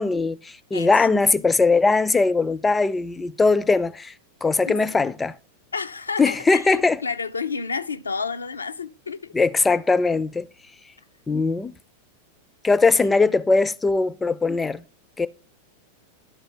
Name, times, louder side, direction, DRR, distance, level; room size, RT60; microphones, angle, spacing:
voice 1, 0.0-4.1 4.4-5.4 6.2-7.0 9.3-10.5 11.3-11.7 12.6-14.8 15.2-15.3, left 3 dB, 10° left, 0.4 m, -20 dB
voice 2, 0.7-1.1 4.7-4.8 5.7-9.3, left 5 dB, 75° left, 0.4 m, -30 dB
11.5 x 4.3 x 4.3 m
figure-of-eight pair, 90°, 0 cm